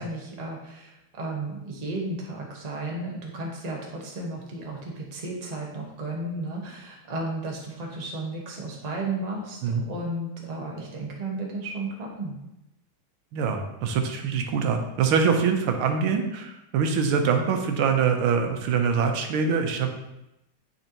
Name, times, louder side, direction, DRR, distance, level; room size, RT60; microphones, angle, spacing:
voice 1, 0.0-12.4, right 2 dB, 25° right, -2 dB, 0.9 m, -34 dB
voice 2, 13.3-19.9, right 6 dB, 85° right, 4 dB, 1.6 m, -24 dB
9.4 x 4.3 x 3.0 m, 0.90 s
omnidirectional pair, 2.2 m